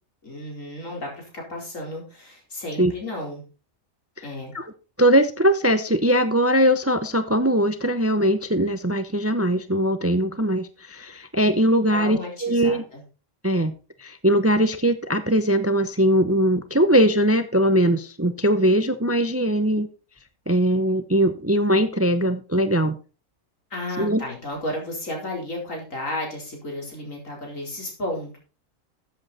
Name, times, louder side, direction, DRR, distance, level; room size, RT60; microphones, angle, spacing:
voice 1, 0.2-3.4 4.2-4.5 11.9-13.0 23.7-28.4, left 1 dB, 75° left, 0 dB, 4.7 m, -33 dB
voice 2, 5.0-12.8 13.4-13.7 14.0-19.9 20.5-23.0 24.0-24.2, equal, 15° right, 11 dB, 0.6 m, -21 dB
13.5 x 8.2 x 4.2 m, 0.34 s
omnidirectional pair, 1.4 m